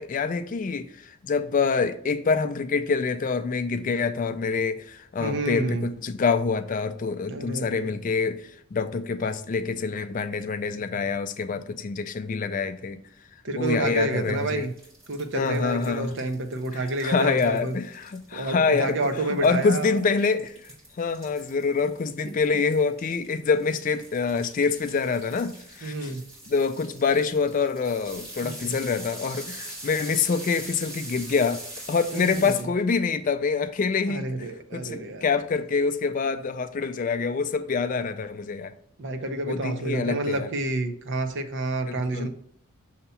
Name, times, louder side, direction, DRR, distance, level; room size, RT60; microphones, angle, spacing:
voice 1, 0.0-13.0 13.5-14.7 15.3-16.2 16.7-19.0 19.4-20.7 21.0-26.1 26.5-34.5 34.7-38.7 39.5-40.5 41.8-42.3, left 5 dB, 35° left, 0.3 m, -26 dB
voice 2, 5.2-5.9 7.3-7.9 13.4-14.7 15.1-17.8 18.3-20.0 25.8-26.2 28.4-28.8 32.1-32.6 34.1-35.3 39.0-42.3, right 2 dB, 55° right, 0.7 m, -29 dB
sound 1, 14.2-32.6, right 1 dB, 25° right, 2.6 m, -43 dB
6.7 x 2.8 x 5.5 m
head